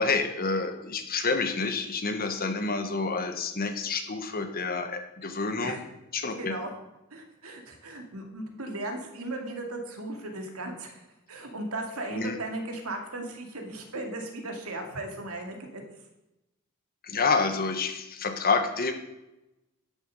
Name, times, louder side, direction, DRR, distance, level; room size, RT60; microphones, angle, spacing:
voice 1, 0.0-5.8 6.1-6.6 12.1-12.4 17.0-18.9, left 4 dB, 45° left, 6 dB, 1.4 m, -28 dB
voice 2, 6.4-6.7 7.1-11.0 11.3-15.8, right 2 dB, 80° right, 3 dB, 2.3 m, -36 dB
11.5 x 7.1 x 6.5 m, 0.93 s
head